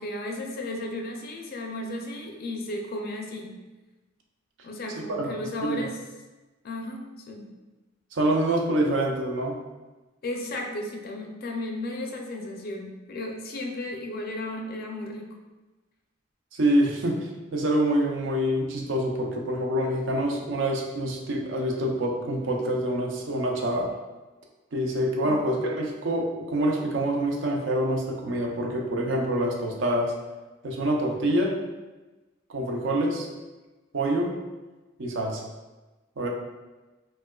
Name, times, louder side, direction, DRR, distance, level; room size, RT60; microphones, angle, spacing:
voice 1, 0.0-3.5 4.6-6.0 6.6-7.5 10.2-15.3 25.2-25.4, left 1 dB, 50° left, 2 dB, 0.4 m, -34 dB
voice 2, 8.1-9.6 16.5-23.9 24.7-30.1 30.6-31.6 32.5-33.3 33.9-34.4 35.0-35.4 36.2-36.3, right 1 dB, 65° right, 0 dB, 0.5 m, -26 dB
4.4 x 2.2 x 2.2 m, 1.2 s
head